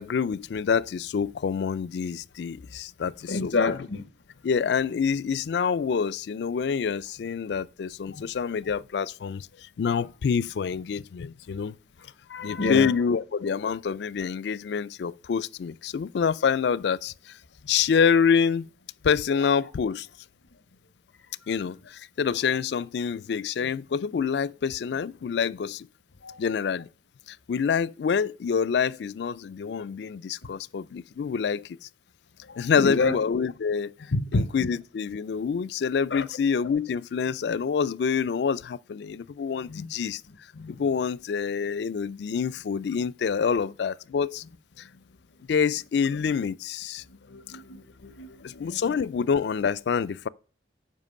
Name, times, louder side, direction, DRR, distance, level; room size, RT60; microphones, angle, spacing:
voice 1, 0.0-3.8 4.4-11.7 12.4-17.4 17.7-18.7 19.0-20.1 21.5-25.9 26.4-26.9 27.3-31.8 32.6-33.9 34.3-40.2 40.7-44.4 44.8-44.9 45.5-47.0 48.4-50.3, left 6 dB, 70° left, 0.3 m, -27 dB
voice 2, 3.3-4.1 8.1-8.2 12.3-12.9 26.2-26.4 32.5-33.2 34.1-34.7 36.1-36.2 39.7-39.9 40.5-40.8 47.3-48.8, left 3 dB, 85° left, 0.8 m, -29 dB
7.4 x 5.2 x 6.5 m
head